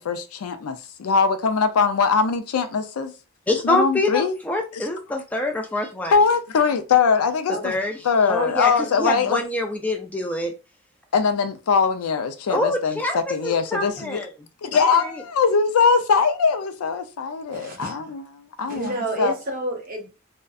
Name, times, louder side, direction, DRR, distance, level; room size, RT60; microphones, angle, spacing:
voice 1, 0.0-3.1 3.6-4.3 4.7-4.9 6.1-7.7 8.0-9.4 11.1-14.3 14.6-19.3, left 5 dB, 90° left, 0.4 m, -21 dB
voice 2, 3.5-6.1 7.6-7.9 8.3-10.5 12.5-13.2 13.4-14.3 14.8-15.2, left 1 dB, 5° left, 0.3 m, -25 dB
voice 3, 17.5-18.1 18.6-20.1, right 2 dB, 40° right, 0.7 m, -30 dB
2.6 x 2.1 x 2.3 m
head